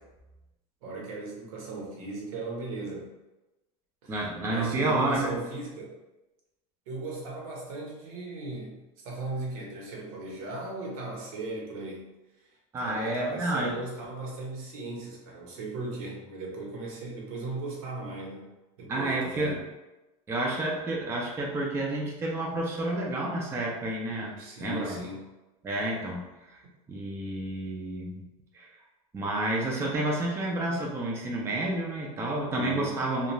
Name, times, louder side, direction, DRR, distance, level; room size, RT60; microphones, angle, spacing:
voice 1, 0.8-3.1 4.0-5.9 6.9-12.1 12.4-12.5 12.8-18.5 18.8-19.6 24.4-25.3 32.5-32.9, right 2 dB, 85° right, -2 dB, 1.0 m, -37 dB
voice 2, 4.1-5.4 12.7-13.8 18.9-19.6 20.3-25.0 25.6-26.6 26.9-28.2 28.5-28.7 29.1-33.3, right 2 dB, 15° right, -2 dB, 0.4 m, -30 dB
2.4 x 2.3 x 2.9 m, 1.0 s
supercardioid pair, 145°, 18 cm